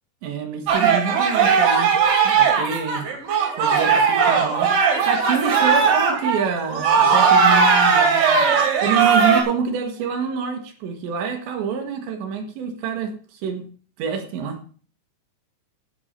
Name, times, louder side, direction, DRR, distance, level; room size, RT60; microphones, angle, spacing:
voice 1, 0.2-2.0 2.2-3.1 3.6-8.5 8.8-13.7 14.0-14.6, right 6 dB, 85° right, 3.9 m, -27 dB
sound 1, 0.7-9.4, right 6 dB, 65° right, 4.5 m, -18 dB
15.5 x 13.0 x 2.8 m
omnidirectional pair, 5.0 m